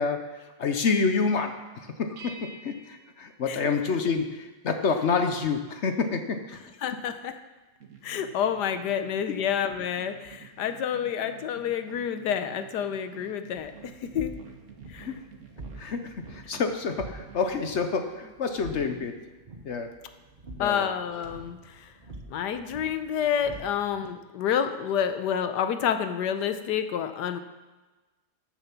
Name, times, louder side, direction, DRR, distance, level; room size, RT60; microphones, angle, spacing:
voice 1, 0.0-6.6 15.0-15.2 15.8-19.3 19.6-19.9 20.6-20.9, left 5 dB, 55° left, 7 dB, 0.9 m, -28 dB
sound 1, 2.2-4.4, right 2 dB, 65° right, 1.6 m, -49 dB
voice 2, 6.8-7.3 8.0-14.3 14.9-15.1 15.8-15.9 20.6-21.9 22.3-27.4, left 8 dB, 85° left, 9 dB, 1.3 m, -29 dB
sound 2, 7.8-17.7, right 7 dB, 50° right, 1.6 m, -49 dB
sound 3, 13.6-24.1, right 2 dB, 35° right, 1.1 m, -47 dB
13.5 x 6.9 x 5.9 m, 1.2 s
omnidirectional pair, 1.8 m